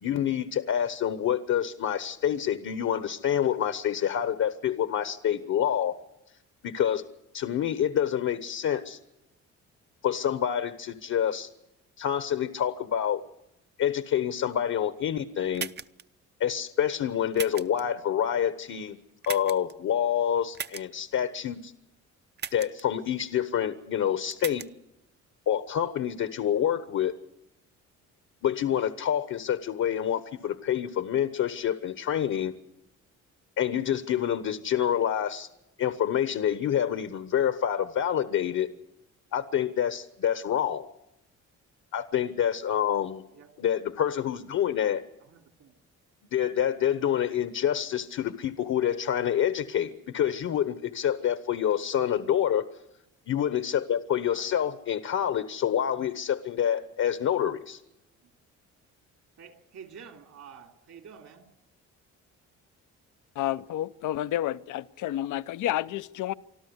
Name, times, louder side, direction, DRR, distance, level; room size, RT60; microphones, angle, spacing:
voice 1, 0.0-6.0 6.6-7.0 7.3-9.0 10.0-11.5 12.0-13.2 13.8-15.7 16.4-19.0 19.3-21.7 22.5-24.6 25.5-27.1 28.4-32.5 33.6-35.5 35.8-38.7 39.3-40.9 41.9-43.2 43.6-45.0 46.3-52.7 53.3-57.8, left 9 dB, 65° left, 1.2 m, -27 dB
sound 1, 15.5-16.0 17.3-17.8 19.2-19.7 20.5-20.8 22.4-22.8 24.3-24.7, right 7 dB, 35° right, 0.7 m, -36 dB
voice 2, 45.3-45.7 54.3-54.6 58.2-58.3 59.4-61.5, right 7 dB, 65° right, 2.9 m, -49 dB
voice 3, 63.4-66.3, left 13 dB, 80° left, 0.7 m, -30 dB
25.5 x 13.0 x 8.1 m
cardioid pair, 90°, 30 cm